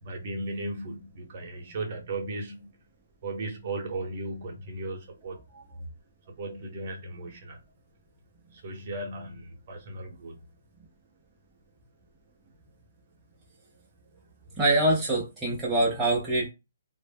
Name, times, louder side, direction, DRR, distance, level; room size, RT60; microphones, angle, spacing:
voice 1, 0.0-2.7 3.2-5.4 6.4-7.6 8.5-10.4, right 2 dB, 35° right, 0.8 m, -36 dB
voice 2, 14.6-16.5, right 1 dB, 5° right, 0.4 m, -24 dB
2.1 x 2.0 x 3.3 m
hypercardioid pair, 165°, 0 cm